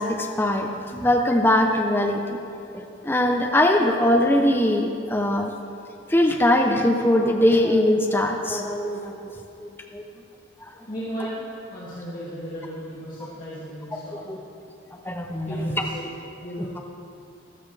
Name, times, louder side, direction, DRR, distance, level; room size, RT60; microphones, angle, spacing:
voice 1, 0.0-2.4 2.7-5.5 6.1-9.3 9.6-10.0 14.1-14.4 15.1-15.8, left 1 dB, 10° left, 2 dB, 0.7 m, -21 dB
voice 2, 10.9-11.4 11.7-14.2 15.5-16.1 16.4-16.8, equal, 40° left, -10 dB, 2.5 m, -35 dB
15.0 x 12.5 x 3.4 m, 2.7 s
head